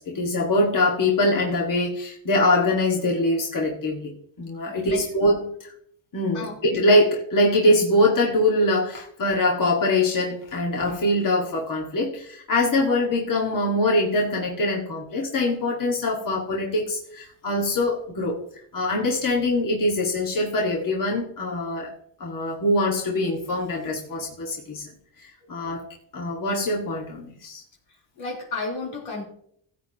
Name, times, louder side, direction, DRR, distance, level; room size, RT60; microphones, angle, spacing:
voice 1, 0.0-5.7 6.1-18.4 18.7-21.9 22.2-24.9 25.2-25.8 26.1-27.6, left 1 dB, 40° left, -2 dB, 2.1 m, -23 dB
voice 2, 28.2-29.2, left 3 dB, 75° left, -2 dB, 4.1 m, -31 dB
15.5 x 8.7 x 3.0 m, 0.68 s
cardioid pair, 105°, 48 cm